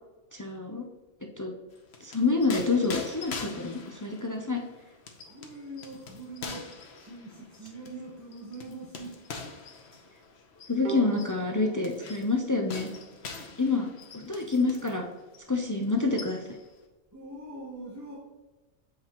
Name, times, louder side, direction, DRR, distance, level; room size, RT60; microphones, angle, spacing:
voice 1, 0.3-0.8 1.4-1.5 2.0-4.6 10.7-12.9 13.6-13.9 14.1-15.1 15.5-16.4, left 3 dB, 30° left, 2 dB, 0.3 m, -27 dB
sound 1, 1.7-15.0 15.3-15.5 15.8-16.7, left 4 dB, 70° left, 1.1 m, -44 dB
voice 2, 5.3-6.7 6.9-9.2 17.1-18.2, right 2 dB, 15° right, -6 dB, 0.9 m, -43 dB
Bowed string instrument, 10.8-14.2, right 7 dB, 50° right, 0.7 m, -43 dB
7.8 x 4.8 x 2.9 m, 1.2 s
omnidirectional pair, 1.2 m